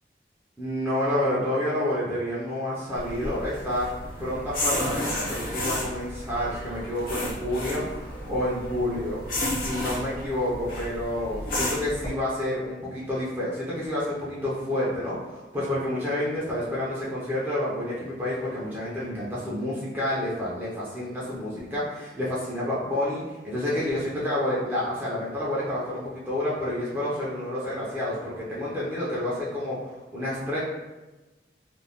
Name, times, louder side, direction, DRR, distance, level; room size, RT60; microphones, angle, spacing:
voice 1, 0.6-3.9 4.2-9.2 9.6-30.6, left 1 dB, 10° right, -9 dB, 0.6 m, -29 dB
sound 1, 2.9-12.1, left 1 dB, 50° left, 0.6 m, -32 dB
2.5 x 2.2 x 3.4 m, 1.1 s
head